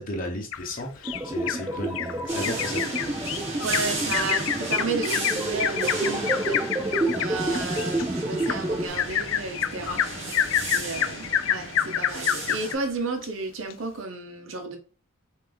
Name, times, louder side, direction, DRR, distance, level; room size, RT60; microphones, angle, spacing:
voice 1, 0.0-2.8, left 1 dB, 40° left, 0.9 m, -34 dB
Bird vocalization bird call bird song, 0.5-1.6 2.0-2.1 2.4-12.8 13.2-13.3 13.7-13.8, left 10 dB, 65° left, 0.3 m, -28 dB
sound 1, 1.0-8.9, right 2 dB, 15° right, 0.4 m, -30 dB
sound 2, 2.3-12.7, right 2 dB, 35° right, 1.6 m, -35 dB
voice 2, 3.6-6.6 6.9-10.4 10.7-14.8, right 3 dB, 65° right, 0.9 m, -33 dB
5.7 x 2.7 x 3.4 m
head